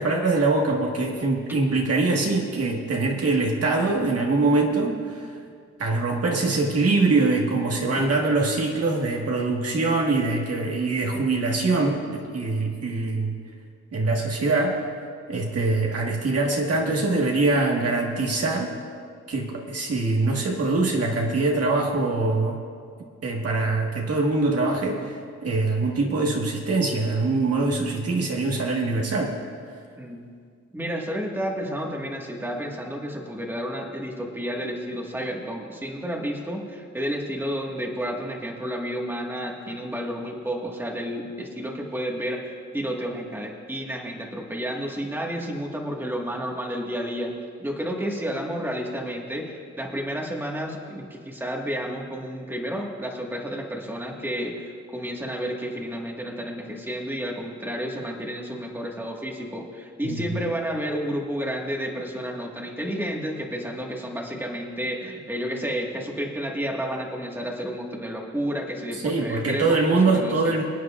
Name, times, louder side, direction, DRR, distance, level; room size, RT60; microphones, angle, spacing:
voice 1, 0.0-5.3 5.8-13.3 13.9-14.7 15.3-18.7 19.3-22.6 23.2-29.3 60.0-60.4 69.0-70.6, right 3 dB, 55° right, 0 dB, 1.5 m, -23 dB
voice 2, 30.7-47.3 47.6-70.5, equal, 5° right, -1 dB, 1.6 m, -31 dB
26.0 x 9.4 x 2.4 m, 2.1 s
wide cardioid pair, 115°, 30 cm